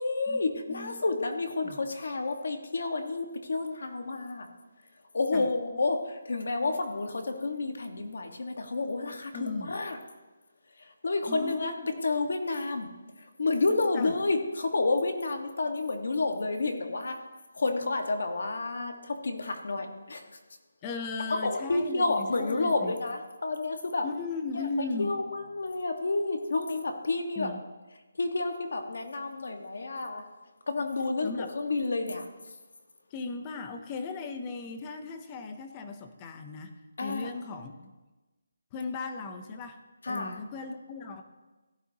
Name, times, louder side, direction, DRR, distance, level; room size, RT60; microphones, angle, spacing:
voice 1, 0.0-4.5 5.1-10.0 11.0-11.7 12.0-12.9 13.4-17.2 17.5-20.2 21.4-24.0 25.0-27.5 28.2-30.2 30.7-32.3 37.0-37.3 40.1-40.3, left 3 dB, 50° left, 5 dB, 1.3 m, -30 dB
voice 2, 0.7-1.0 1.6-1.8 5.3-5.5 9.3-9.8 11.3-11.9 13.9-14.2 20.8-22.9 24.0-25.1 27.4-27.6 31.2-31.5 33.1-36.7 37.0-37.9 38.7-39.8 40.1-41.2, left 4 dB, 10° left, 7 dB, 0.5 m, -37 dB
16.0 x 12.0 x 2.8 m, 1.2 s
hypercardioid pair, 180°, 0 cm